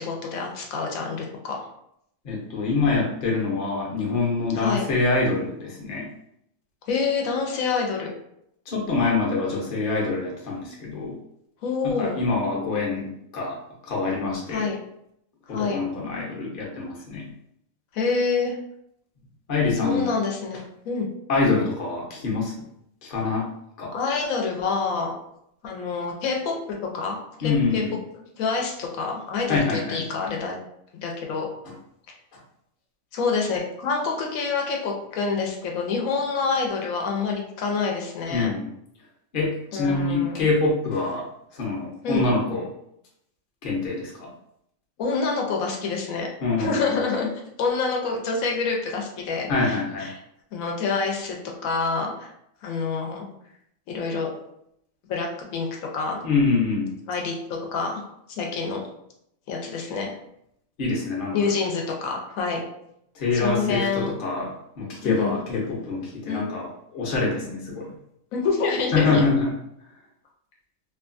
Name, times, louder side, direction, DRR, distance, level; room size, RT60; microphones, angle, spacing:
voice 1, 0.0-1.6 4.5-4.8 6.9-8.1 11.6-12.2 14.5-14.8 15.5-15.8 17.9-18.5 19.8-20.6 20.8-21.1 23.9-25.1 25.6-27.8 28.4-30.5 31.0-31.5 33.1-38.5 39.7-40.5 42.0-42.2 45.0-46.3 46.6-47.3 47.6-50.2 50.5-51.4 51.6-52.3 52.6-53.2 53.9-54.3 55.1-55.7 55.9-56.2 57.1-57.3 57.7-58.0 58.3-58.8 59.5-60.1 61.3-62.6 63.3-64.1 65.0-65.4 66.3-66.5 68.3-69.2, left 4 dB, 85° left, 0 dB, 1.0 m, -27 dB
voice 2, 2.2-6.1 8.7-11.2 11.8-13.6 13.8-14.7 15.5-17.3 19.5-20.1 21.3-22.5 23.0-23.5 23.8-23.9 27.4-28.0 29.5-30.0 38.3-38.7 39.3-41.3 41.5-42.7 43.6-44.3 46.4-46.9 49.5-50.1 56.2-56.9 60.8-61.5 63.1-64.5 64.8-67.9 68.9-69.5, left 3 dB, 45° left, -2 dB, 0.8 m, -25 dB
2.9 x 2.2 x 2.4 m, 0.76 s
omnidirectional pair, 1.4 m